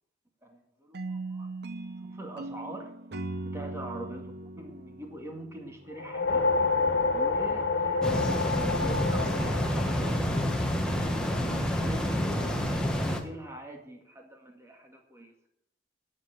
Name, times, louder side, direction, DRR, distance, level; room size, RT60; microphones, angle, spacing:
voice 1, 0.4-1.5 2.1-2.9 3.4-4.2 4.6-6.5 7.1-15.3, right 1 dB, 15° right, 2 dB, 2.0 m, -43 dB
sound 1, 0.9-6.1, right 2 dB, 60° right, 0.8 m, -39 dB
sound 2, 5.9-10.5, left 4 dB, 80° left, 1.7 m, -28 dB
sound 3, 8.0-13.2, equal, 5° left, 1.4 m, -28 dB
9.5 x 7.6 x 9.1 m, 0.78 s
head